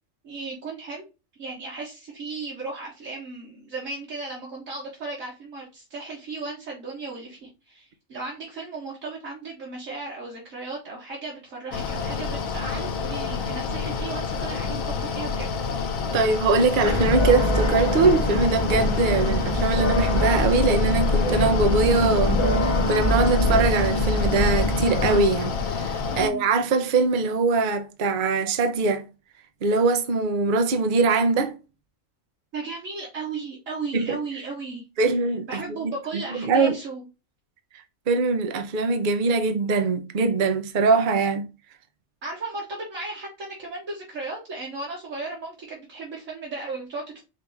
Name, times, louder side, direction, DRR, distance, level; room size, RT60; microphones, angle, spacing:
voice 1, 0.2-1.0 1.4-15.5 26.1-26.4 32.5-35.1 35.5-37.0 42.2-47.2, right 3 dB, 70° right, 1.8 m, -35 dB
Mechanical fan, 11.7-26.3, left 5 dB, 85° left, 1.2 m, -29 dB
voice 2, 16.1-29.0 29.6-31.5 33.9-34.2 35.0-36.7 38.1-41.5, right 3 dB, 45° right, 0.7 m, -22 dB
sound 1, 16.8-25.2, left 1 dB, 30° left, 0.7 m, -23 dB
5.1 x 2.8 x 3.4 m
omnidirectional pair, 1.4 m